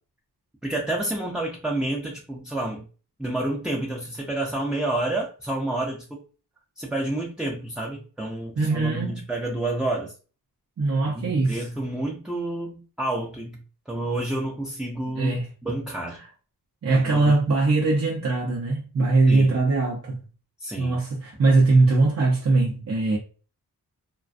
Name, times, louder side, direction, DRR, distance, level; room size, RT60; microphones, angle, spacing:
voice 1, 0.6-2.8 3.2-6.2 6.8-10.1 11.1-15.3 15.6-16.2 16.9-17.4 19.3-19.5 20.6-21.0, right 1 dB, ahead, 0.4 m, -29 dB
voice 2, 8.6-9.2 10.8-11.6 15.2-15.5 16.8-20.2 20.8-23.2, right 3 dB, 45° right, 0.6 m, -21 dB
2.4 x 2.3 x 2.5 m
cardioid pair, 60°, 39 cm